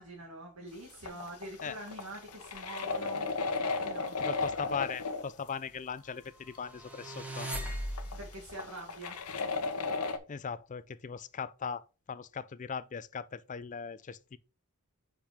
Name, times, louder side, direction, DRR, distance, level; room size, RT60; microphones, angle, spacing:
voice 1, 0.0-3.3 3.6-4.2 8.2-9.2, right 1 dB, 80° right, 1.9 m, -45 dB
sound 1, 0.9-5.3 6.2-6.3 6.5-6.6 7.5-7.6 7.9-10.2, left 4 dB, 85° left, 1.0 m, -35 dB
voice 2, 4.2-7.5 10.3-14.4, left 6 dB, 35° left, 0.4 m, -39 dB
sound 2, 6.7-8.4, equal, 5° right, 1.3 m, -38 dB
5.3 x 5.0 x 5.1 m
head